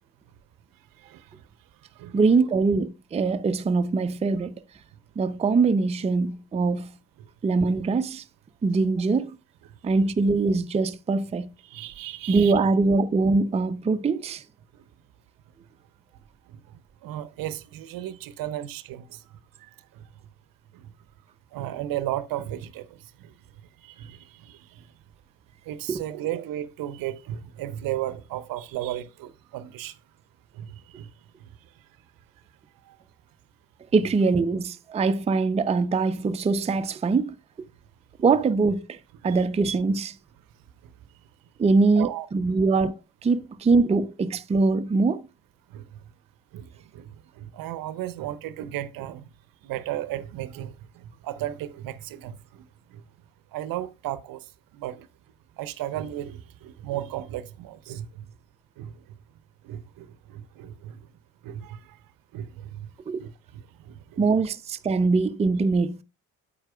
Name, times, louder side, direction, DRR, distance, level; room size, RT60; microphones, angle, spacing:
voice 1, 1.0-1.5 1.9-2.2 7.2-7.3 11.6-12.5 14.7-14.8 16.5-16.6 17.0-20.1 20.7-20.9 21.5-23.3 23.8-24.9 25.6-30.0 30.5-31.1 31.4-31.5 32.8-33.0 39.2-39.4 40.8-40.9 42.0-42.6 45.7-45.9 46.5-49.3 49.6-53.0 53.5-55.1 55.6-58.3 58.8-59.0 59.6-61.1 61.4-62.0 62.3-62.9 63.2-64.2, right 13 dB, 55° right, 0.7 m, -35 dB
voice 2, 2.1-4.5 5.2-6.9 7.4-8.2 8.6-9.3 9.8-11.5 12.3-14.4 25.9-26.0 33.9-37.3 38.2-39.0 39.2-40.2 41.6-42.9 43.2-45.2 63.1-63.2 64.2-66.0, right 4 dB, 15° right, 0.5 m, -23 dB
8.8 x 8.6 x 2.3 m
figure-of-eight pair, 45°, 42 cm